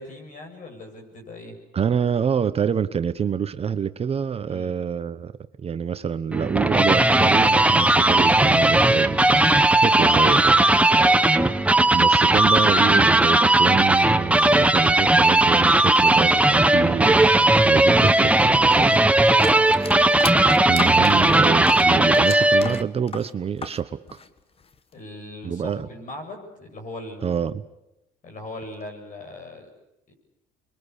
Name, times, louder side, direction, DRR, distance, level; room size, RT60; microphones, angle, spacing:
voice 1, 0.0-1.6 4.5-4.7 10.0-10.3 10.9-11.2 19.2-19.6 24.9-27.4 28.2-29.7 30.1-30.2, left 2 dB, 50° left, 4 dB, 7.8 m, -38 dB
voice 2, 1.7-5.3 5.6-9.5 9.8-10.6 11.9-19.3 20.7-24.2 25.4-25.9 27.2-27.5, right 7 dB, 35° right, 12 dB, 1.1 m, -26 dB
sound 1, 6.3-22.8, right 2 dB, 5° right, 1.1 m, -17 dB
sound 2, 18.7-23.8 24.1-24.9, left 5 dB, 35° left, 1.6 m, -35 dB
28.5 x 23.0 x 8.4 m, 0.89 s
cardioid pair, 110°, 17 cm